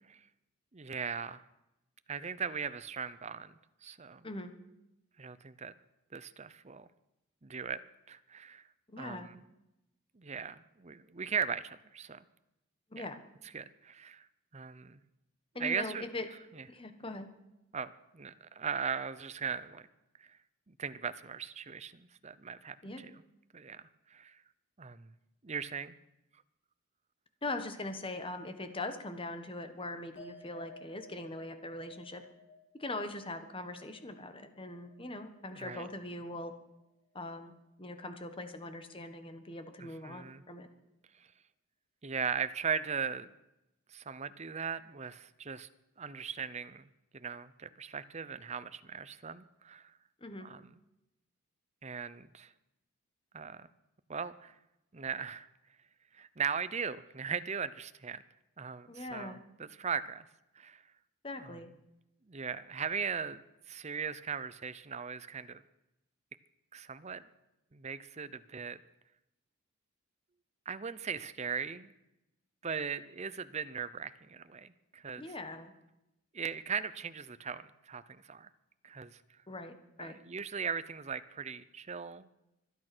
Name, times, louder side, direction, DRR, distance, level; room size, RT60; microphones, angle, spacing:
voice 1, 0.7-1.4 2.1-3.5 3.8-4.2 5.2-5.7 6.1-6.9 7.4-7.8 8.1-8.6 9.0-9.4 10.2-12.2 13.0-13.1 13.5-14.3 14.5-15.0 15.6-16.0 16.5-16.6 17.7-19.8 20.2-20.4 20.7-23.1 23.5-23.8 24.1-24.4 24.8-25.1 25.4-25.9 35.5-35.9 39.8-40.4 42.0-43.3 43.9-45.7 46.0-46.8 47.1-49.9 50.4-50.7 51.8-52.5 53.3-53.7 54.1-54.5 54.9-55.5 56.1-58.2 58.6-60.2 60.6-60.8 61.4-61.6 62.3-63.4 63.7-65.6 66.7-67.2 67.7-68.8 70.7-71.9 72.6-75.3 76.3-78.5 78.8-79.2 80.0-82.3, right 6 dB, 30° right, 14 dB, 0.6 m, -38 dB
voice 2, 8.9-9.3 12.9-13.2 15.5-16.3 16.7-17.3 22.8-23.0 27.4-32.2 32.8-36.5 37.1-37.5 37.8-40.7 50.2-50.5 58.9-59.4 61.2-61.7 75.2-75.7 79.5-80.2, left 2 dB, 25° left, 8 dB, 1.4 m, -41 dB
sound 1, 30.2-36.8 37.1-37.8, left 3 dB, 55° left, 6.0 m, -57 dB
25.0 x 8.9 x 6.2 m, 0.91 s
head